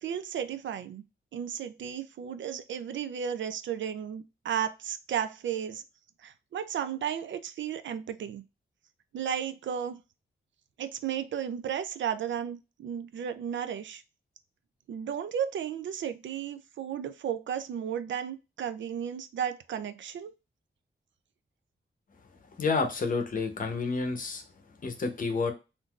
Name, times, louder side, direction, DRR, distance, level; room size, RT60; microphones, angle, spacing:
voice 1, 0.0-1.0 1.3-5.8 6.2-8.4 9.1-10.0 10.8-14.0 14.9-20.3, right 8 dB, 70° right, 0.4 m, -34 dB
voice 2, 22.6-24.4 24.8-25.5, left 4 dB, 45° left, 0.7 m, -29 dB
3.7 x 2.6 x 2.3 m
wide cardioid pair, 170°, 20 cm